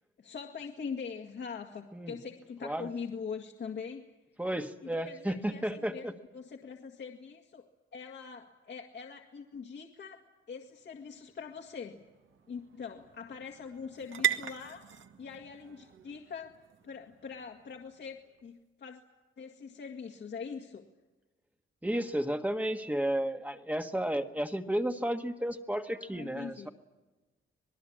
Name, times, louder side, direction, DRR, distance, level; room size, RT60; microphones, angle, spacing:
voice 1, 0.2-4.1 4.9-7.7 7.9-12.1 12.5-16.5 16.8-19.0 19.4-20.9 25.9-26.7, left 6 dB, 55° left, 2 dB, 1.9 m, -43 dB
voice 2, 4.4-6.1 21.8-26.7, right 1 dB, 5° right, 6 dB, 1.4 m, -32 dB
sound 1, 10.6-18.5, right 10 dB, 65° right, 1.8 m, -40 dB
26.5 x 20.5 x 8.7 m, 1.2 s
wide cardioid pair, 140°, 21 cm